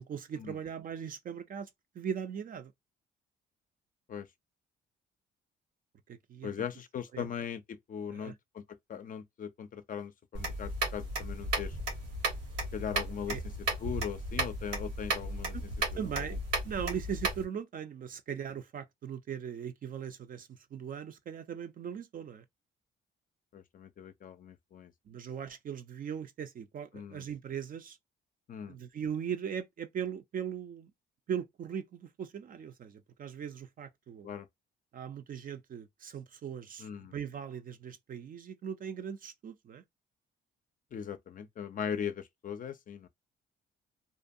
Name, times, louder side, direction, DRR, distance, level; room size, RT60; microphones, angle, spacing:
voice 1, 0.0-1.7 1.9-2.7 6.1-6.5 7.1-7.3 8.1-8.3 13.3-13.4 15.5-15.6 16.0-16.4 16.6-22.4 25.1-28.0 28.7-30.9 31.3-34.3 34.9-39.8, right 8 dB, 45° right, 0.4 m, -39 dB
voice 2, 6.4-8.6 8.9-11.8 12.7-13.4 13.8-15.6 15.9-16.3 23.5-24.9 26.9-27.3 28.5-28.8 34.2-34.5 36.8-37.1 40.9-43.1, left 8 dB, 45° left, 0.4 m, -39 dB
sound 1, 10.3-17.4, right 2 dB, 90° right, 1.4 m, -35 dB
2.5 x 2.2 x 2.6 m
cardioid pair, 90°, 20 cm